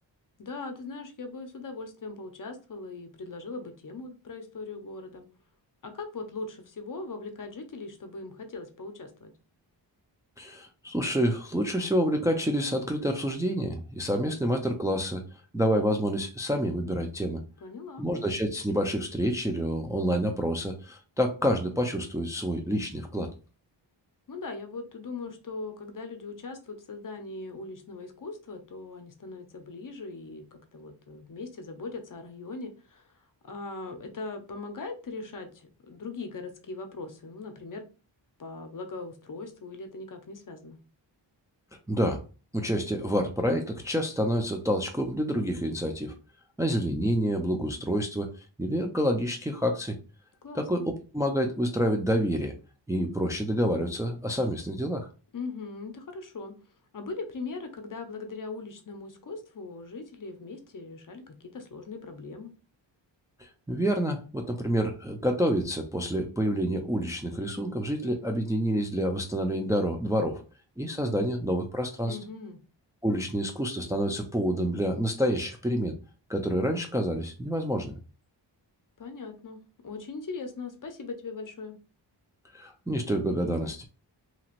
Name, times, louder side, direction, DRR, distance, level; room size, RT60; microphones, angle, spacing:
voice 1, 0.4-5.2 5.8-9.3 17.6-18.1 24.3-33.1 33.4-37.8 38.4-40.8 50.4-50.8 55.3-56.5 56.9-62.5 72.0-72.6 79.0-81.8, left 3 dB, 45° left, 6 dB, 0.7 m, -40 dB
voice 2, 10.4-15.2 15.5-17.4 18.0-23.3 41.9-42.2 42.5-46.1 46.6-50.0 50.5-52.5 52.9-55.1 63.4-70.4 70.8-72.2 73.0-76.0 76.3-77.9 82.5-83.8, equal, 5° right, 3 dB, 0.4 m, -28 dB
2.9 x 2.8 x 2.5 m, 0.34 s
cardioid pair, 75°, 46 cm